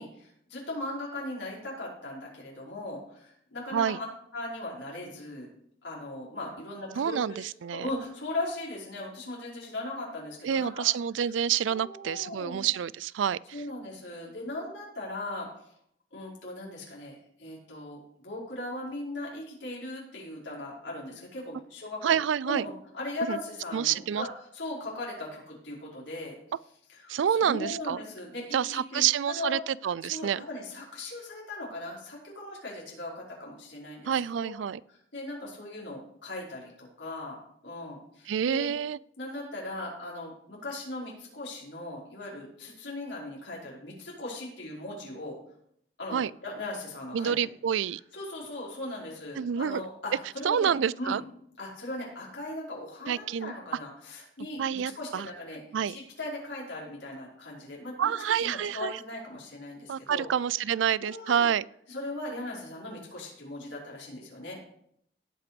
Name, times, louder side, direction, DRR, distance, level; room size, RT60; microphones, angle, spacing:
voice 1, 0.0-4.0 4.3-5.5 5.8-10.8 11.7-12.7 13.5-15.7 16.1-22.2 22.4-24.3 24.5-26.4 26.9-29.6 30.0-34.1 34.4-34.5 34.9-37.4 37.6-38.7 39.2-45.4 46.0-47.3 48.1-51.2 51.6-60.3 61.0-61.5 61.9-64.6, left 2 dB, 80° left, -4 dB, 5.1 m, -38 dB
voice 2, 7.0-7.9 10.4-13.4 22.0-22.6 23.3-23.4 23.7-24.3 27.1-28.0 28.5-30.4 34.1-34.8 38.3-39.0 46.1-46.3 47.1-48.0 49.4-49.8 50.4-51.2 53.1-53.5 54.6-55.3 55.7-56.0 58.0-58.9 59.9-61.7, right 8 dB, 85° right, 21 dB, 0.4 m, -28 dB
17.5 x 5.9 x 5.2 m, 0.70 s
head